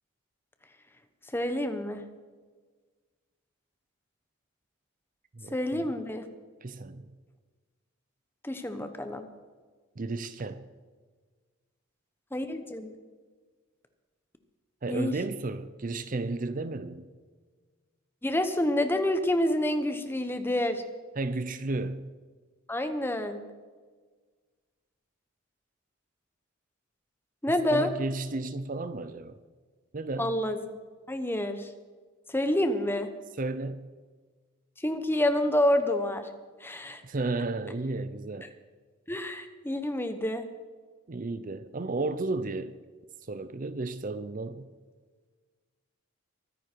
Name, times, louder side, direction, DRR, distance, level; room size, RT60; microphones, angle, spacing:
voice 1, 1.3-2.0 5.5-6.3 8.4-9.2 12.3-12.9 14.9-15.1 18.2-20.8 22.7-23.4 27.4-27.9 30.2-30.6 31.1-31.7 32.3-33.1 34.8-36.3 36.6-37.0 39.1-40.4, left 1 dB, 10° left, 8 dB, 1.0 m, -28 dB
voice 2, 5.3-5.9 6.6-7.1 10.0-10.6 14.8-17.0 21.2-22.1 27.7-29.4 29.9-30.3 33.4-33.9 37.0-38.5 41.1-42.7 43.3-44.7, right 2 dB, 40° right, 12 dB, 0.6 m, -33 dB
23.5 x 10.0 x 4.6 m, 1.4 s
head